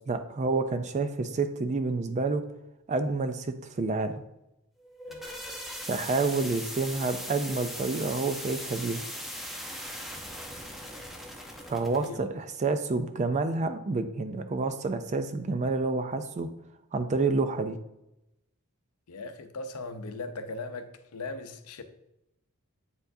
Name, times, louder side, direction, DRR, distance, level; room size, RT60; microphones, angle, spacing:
voice 1, 0.1-2.4 2.9-4.2 5.9-9.0 11.7-16.5 16.9-17.8, right 3 dB, 30° right, 0.3 m, -29 dB
sound 1, 4.8-12.1, equal, ahead, 0.7 m, -39 dB
voice 2, 10.5-11.2 12.0-12.2 19.1-21.8, left 3 dB, 90° left, 0.6 m, -40 dB
8.4 x 4.5 x 2.6 m
head